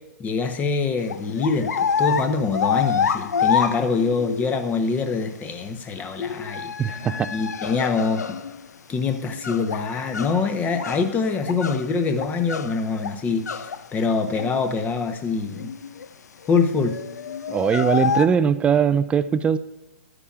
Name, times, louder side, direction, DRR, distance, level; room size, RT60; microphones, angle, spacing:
voice 1, 0.2-6.7 7.3-8.4 8.9-15.7 16.5-17.0, left 4 dB, 20° left, 7 dB, 0.8 m, -24 dB
sound 1, 1.1-4.6 6.2-8.6 9.2-11.2 11.4-13.8 14.1-14.8 15.1-15.2 15.4-16.1 16.5-18.3, left 6 dB, 85° left, 0.5 m, -27 dB
voice 2, 6.8-7.3 17.5-19.6, right 7 dB, 15° right, 13 dB, 0.3 m, -20 dB
11.5 x 9.7 x 2.4 m, 1.0 s
hypercardioid pair, 130°, 9 cm